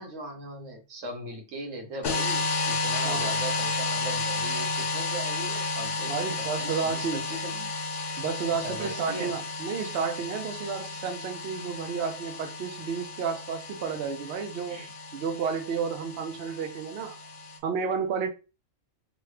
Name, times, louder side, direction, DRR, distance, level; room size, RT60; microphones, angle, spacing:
voice 1, 0.0-7.7 8.5-9.4 14.7-14.9, right 1 dB, 85° right, 1.2 m, -39 dB
sound 1, 2.0-17.6, left 3 dB, 75° left, 1.0 m, -32 dB
voice 2, 6.0-7.2 8.2-14.9 15.1-17.2 17.6-18.3, right 6 dB, 65° right, 0.7 m, -31 dB
3.0 x 2.4 x 3.2 m
omnidirectional pair, 1.3 m